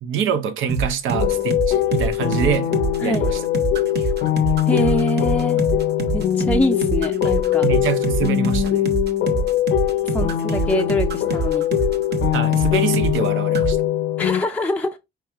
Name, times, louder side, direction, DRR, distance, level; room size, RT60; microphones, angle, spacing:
voice 1, 0.0-2.7 3.0-3.4 7.6-8.8 12.3-13.8, right 8 dB, 80° right, 0.6 m, -25 dB
sound 1, 0.7-13.3 13.5-13.7, right 4 dB, 55° right, 0.9 m, -25 dB
sound 2, 1.1-14.4, left 12 dB, 80° left, 0.6 m, -21 dB
voice 2, 4.7-5.6 6.1-7.7 10.0-11.7 14.2-15.0, left 1 dB, 10° left, 0.4 m, -24 dB
4.6 x 3.0 x 3.4 m
cardioid pair, 90°, 20 cm